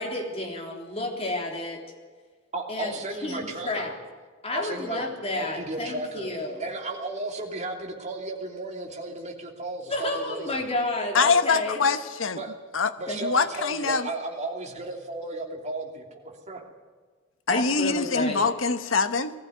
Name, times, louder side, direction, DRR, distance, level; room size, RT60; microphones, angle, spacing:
voice 1, 0.0-1.8 2.7-2.9 3.2-3.9 4.4-6.7 9.9-11.8 13.1-13.2 17.5-18.5, left 2 dB, 30° left, 1 dB, 3.5 m, -31 dB
voice 2, 2.5-3.9 4.5-5.0 5.3-6.3 6.6-10.6 12.4-12.5 13.0-16.6, right 2 dB, 35° right, 1 dB, 3.0 m, -34 dB
voice 3, 11.1-12.4 12.7-12.9 13.2-14.0 17.5-19.3, left 4 dB, 85° left, 10 dB, 1.1 m, -24 dB
19.5 x 15.0 x 9.4 m, 1.5 s
head